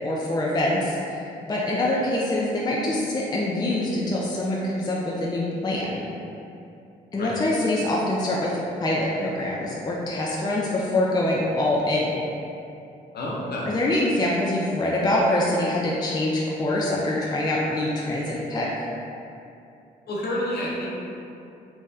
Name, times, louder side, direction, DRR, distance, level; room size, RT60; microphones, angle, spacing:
voice 1, 0.0-6.0 7.1-12.1 13.7-18.7, left 1 dB, 20° left, -4 dB, 0.4 m, -25 dB
voice 2, 13.1-13.7 20.1-20.9, left 1 dB, 50° left, -4 dB, 0.8 m, -29 dB
3.3 x 2.2 x 2.7 m, 2.7 s
hypercardioid pair, 45°, 21 cm